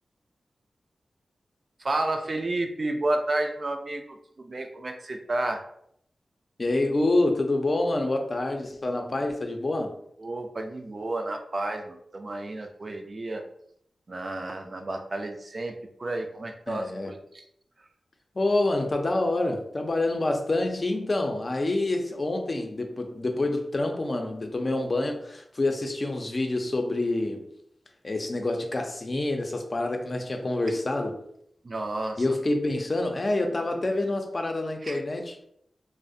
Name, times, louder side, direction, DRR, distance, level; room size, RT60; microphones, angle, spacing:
voice 1, 1.8-4.0 4.4-5.6 10.2-13.4 14.1-17.4 31.6-32.2 34.8-35.0, right 2 dB, 55° right, 5 dB, 0.3 m, -31 dB
voice 2, 6.6-10.0 16.7-17.1 18.4-27.5 28.0-31.2 32.2-35.4, left 2 dB, 50° left, 3 dB, 0.4 m, -27 dB
2.4 x 2.0 x 2.6 m, 0.72 s
cardioid pair, 40°, 0 cm